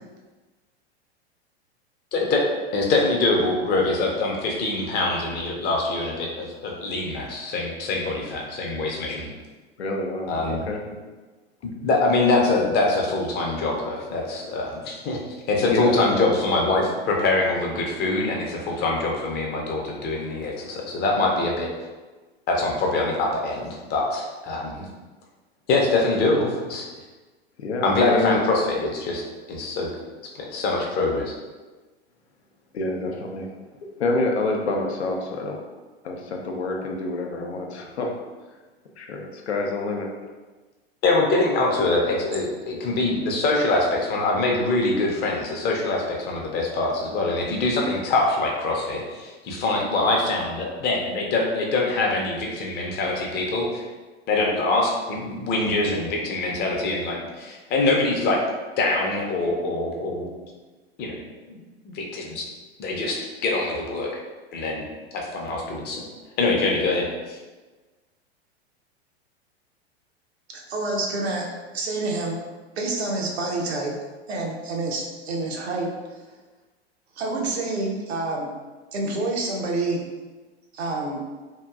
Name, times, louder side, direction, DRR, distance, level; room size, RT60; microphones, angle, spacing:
voice 1, 2.1-2.4 2.7-9.3 10.3-10.7 11.6-15.2 15.5-21.7 22.5-24.9 25.7-26.9 27.8-29.2 29.5-29.9 30.3-31.3 41.0-53.8 54.3-58.4 58.8-60.3 61.0-61.2 61.5-62.4 62.8-64.2 64.5-64.9 65.1-66.0 66.4-67.4, left 2 dB, 30° left, -1 dB, 0.6 m, -24 dB
voice 2, 9.8-10.8 15.6-16.0 27.6-28.4 32.7-33.5 34.0-35.6 36.0-38.1 39.0-40.1, left 2 dB, 85° left, 1 dB, 0.6 m, -27 dB
voice 3, 70.5-71.5 71.7-72.4 72.8-73.9 74.3-75.9 77.1-78.5 78.9-80.0 80.7-81.2, right 2 dB, 75° right, 0 dB, 0.7 m, -27 dB
2.9 x 2.5 x 2.3 m, 1.3 s
hypercardioid pair, 100°, 32 cm